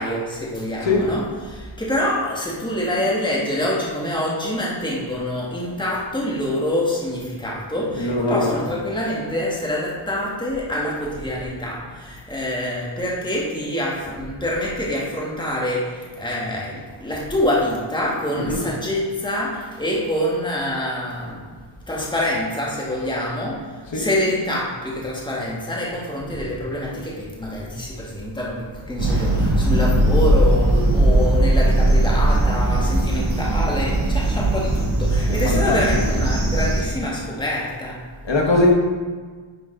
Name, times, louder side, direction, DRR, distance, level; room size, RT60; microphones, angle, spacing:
voice 1, 0.0-21.5 21.9-38.0, left 1 dB, 10° left, -5 dB, 1.5 m, -26 dB
voice 2, 7.9-8.6 18.4-18.6 23.9-24.1 35.2-35.8 38.2-38.7, left 2 dB, 65° left, 0 dB, 1.4 m, -21 dB
sound 1, 29.0-36.8, right 1 dB, 70° right, 1.3 m, -19 dB
9.8 x 3.8 x 3.8 m, 1.5 s
wide cardioid pair, 45°, 48 cm